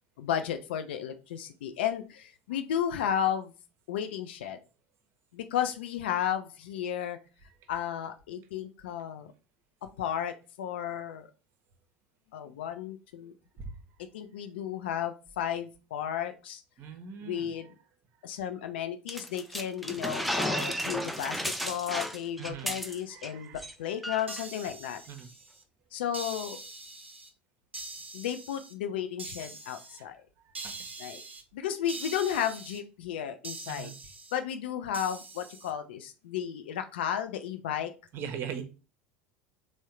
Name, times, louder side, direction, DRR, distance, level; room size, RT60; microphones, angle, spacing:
voice 1, 0.2-3.5 3.9-4.6 5.3-7.2 7.7-9.3 10.0-11.3 12.3-13.3 14.1-16.6 17.2-17.7 18.2-25.0 25.9-26.6 28.1-30.2 31.0-31.2 31.5-33.9 34.3-37.9, left 9 dB, 65° left, 9 dB, 0.4 m, -33 dB
voice 2, 16.8-17.5 22.4-24.1 25.1-25.3 30.0-30.1 30.4-30.7 33.7-33.9 38.1-38.6, right 7 dB, 40° right, 7 dB, 0.6 m, -41 dB
sound 1, 19.1-23.3 23.6-23.7 24.0-24.4, equal, ahead, 0.4 m, -33 dB
sound 2, 24.3-25.6 26.1-27.3 27.7-28.7 29.2-30.0 30.5-31.4 31.9-32.8 33.4-34.4 34.9-35.7, right 3 dB, 85° right, 0.5 m, -43 dB
3.5 x 2.1 x 4.3 m, 0.32 s
figure-of-eight pair, 75°, 6 cm